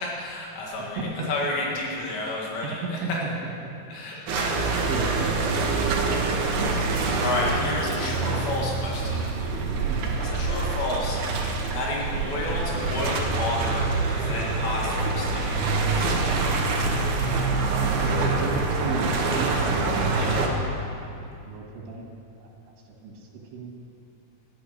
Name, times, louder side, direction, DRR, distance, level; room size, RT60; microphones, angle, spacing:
voice 1, 0.0-1.0 1.3-3.2 3.9-4.8 6.4-6.6 7.2-9.2 10.2-15.6 20.1-20.5, left 2 dB, 80° left, -3 dB, 4.0 m, -31 dB
voice 2, 1.0-1.3 2.6-3.8 4.1-4.2 4.9-6.1 9.9-10.2 18.0-19.9 21.5-22.1 22.4-22.5 23.0-23.7, right 4 dB, 85° right, 1 dB, 4.1 m, -34 dB
sound 1, 4.3-20.5, right 3 dB, 70° right, 3.2 m, -25 dB
14.0 x 11.5 x 6.6 m, 2.7 s
omnidirectional pair, 5.0 m